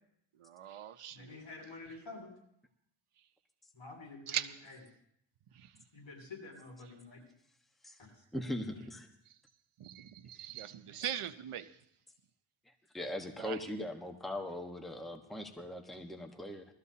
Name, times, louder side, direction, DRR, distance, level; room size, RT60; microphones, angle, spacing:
voice 1, 0.4-1.4 4.3-4.5 9.8-11.7 13.4-13.6, right 10 dB, 85° right, 11 dB, 0.8 m, -40 dB
voice 2, 1.1-2.3 3.7-4.8 5.9-7.2 8.0-8.1 8.7-8.8, left 3 dB, 65° left, -2 dB, 6.8 m, -49 dB
voice 3, 8.3-9.1 12.9-16.7, left 1 dB, ahead, 4 dB, 1.2 m, -40 dB
21.5 x 14.0 x 2.8 m, 0.73 s
wide cardioid pair, 75°, 49 cm